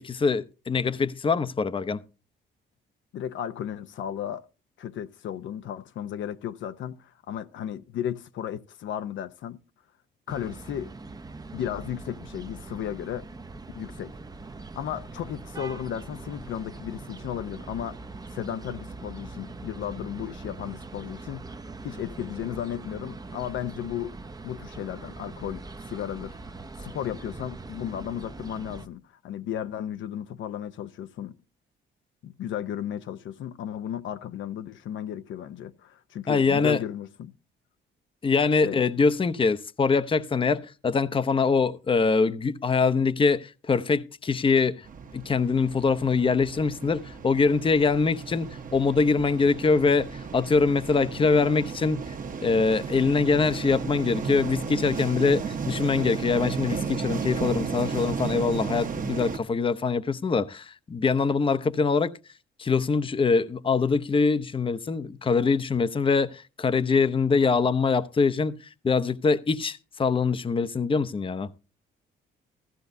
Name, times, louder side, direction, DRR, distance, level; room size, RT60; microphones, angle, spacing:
voice 1, 0.0-2.0 36.3-36.8 38.2-44.9 45.1-52.0 52.4-62.1 62.6-68.6 68.8-71.5, left 4 dB, 25° left, 0.7 m, -23 dB
voice 2, 3.1-4.4 4.8-9.6 10.3-10.9 11.5-13.3 13.7-14.2 14.8-18.0 18.3-21.5 21.8-24.2 24.4-26.4 26.8-31.4 32.2-37.3 38.6-38.8, left 10 dB, 70° left, 0.7 m, -34 dB
sound 1, 10.3-28.9, right 3 dB, 20° right, 0.7 m, -42 dB
sound 2, 44.8-59.4, right 6 dB, 45° right, 1.1 m, -34 dB
15.5 x 14.0 x 2.7 m
cardioid pair, 90°, 20 cm